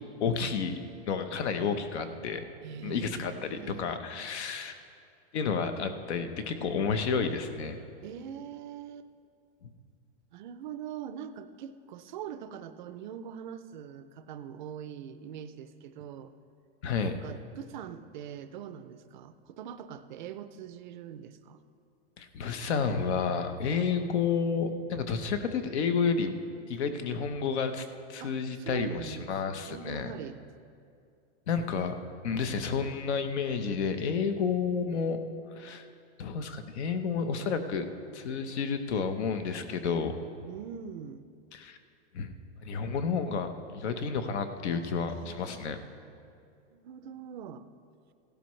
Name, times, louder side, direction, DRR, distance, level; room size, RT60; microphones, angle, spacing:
voice 1, 0.2-0.8 1.1-2.5 2.8-4.8 5.3-7.8 16.8-17.1 22.2-26.3 26.7-30.1 31.5-32.0 32.2-35.2 35.5-35.9 36.2-37.9 38.1-40.1 41.5-41.8 42.1-42.3 42.6-45.8, left 5 dB, 65° left, 9 dB, 1.0 m, -30 dB
voice 2, 2.6-4.0 8.0-9.1 10.3-16.3 17.0-21.6 28.2-30.4 40.5-41.3 45.1-45.7 46.7-47.6, right 8 dB, 40° right, 11 dB, 0.4 m, -43 dB
16.0 x 12.0 x 3.2 m, 2.4 s
supercardioid pair, 170°, 36 cm